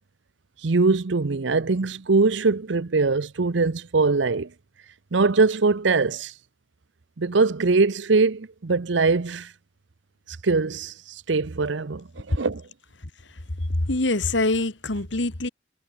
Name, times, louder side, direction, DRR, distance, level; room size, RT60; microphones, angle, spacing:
voice 1, 0.6-4.5 5.1-6.3 7.2-9.5 10.4-10.9 11.3-12.6, right 3 dB, 70° right, 0.7 m, -22 dB
voice 2, 13.9-15.5, left 2 dB, 70° left, 2.1 m, -24 dB
head